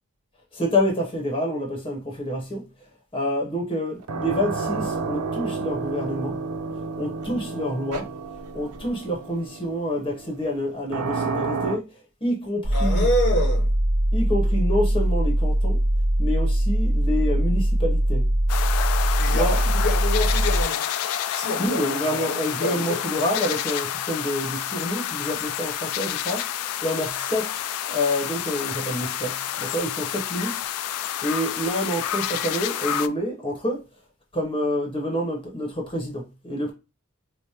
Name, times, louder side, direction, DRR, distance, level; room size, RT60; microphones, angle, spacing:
voice 1, 0.5-2.6 3.1-6.5 7.0-8.1 8.5-11.9 12.2-13.1 14.1-15.8 16.2-18.3 19.3-19.6 21.6-27.6 27.9-30.6 30.9-33.8 34.3-36.7, equal, 25° left, 1.0 m, -27 dB
sound 1, 4.0-11.8, right 4 dB, 85° right, 0.5 m, -31 dB
sound 2, 12.6-20.6, right 1 dB, 40° right, 0.6 m, -21 dB
voice 2, 12.7-13.7 18.9-20.8 21.3-23.0, left 1 dB, 55° left, 0.9 m, -28 dB
sound 3, 18.5-33.1, left 10 dB, 80° left, 0.3 m, -29 dB
4.9 x 2.1 x 2.8 m
head